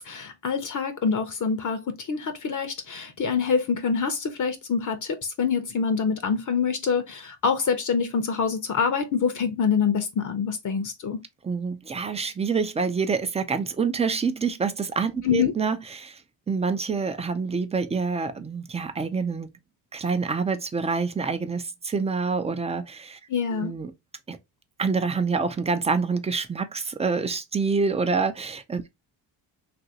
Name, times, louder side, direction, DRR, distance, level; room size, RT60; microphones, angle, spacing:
voice 1, 0.0-11.2 15.2-15.5 23.3-23.7, left 6 dB, 40° left, 0.6 m, -26 dB
voice 2, 11.4-16.2 16.5-19.6 19.9-23.2 23.5-23.9 24.3-24.4 24.8-28.8, right 5 dB, 15° right, 0.4 m, -27 dB
2.8 x 2.6 x 2.7 m
supercardioid pair, 75°, 49 cm